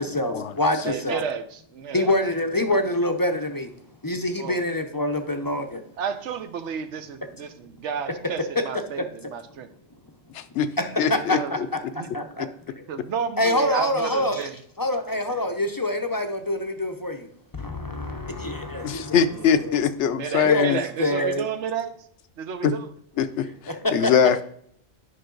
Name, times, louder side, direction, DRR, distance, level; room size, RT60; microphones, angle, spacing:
voice 1, 0.0-1.2 1.9-3.7 4.0-5.8 10.8-12.5 12.7-12.8 13.4-14.5 14.8-19.2 19.6-19.8 20.4-21.4 23.4-24.1, left 1 dB, 25° left, 6 dB, 0.4 m, -26 dB
voice 2, 0.8-2.2 4.4-4.6 6.0-9.7 11.3-11.6 11.9-12.1 12.9-14.6 19.3-19.6 20.1-22.0 22.4-22.9, right 7 dB, 90° right, 10 dB, 1.1 m, -32 dB
voice 3, 10.3-10.7 11.0-11.7 18.8-20.8 22.6-22.7 23.2-23.5 23.9-24.4, left 7 dB, 80° left, 11 dB, 0.9 m, -22 dB
9.6 x 5.5 x 3.8 m, 0.65 s
omnidirectional pair, 1.2 m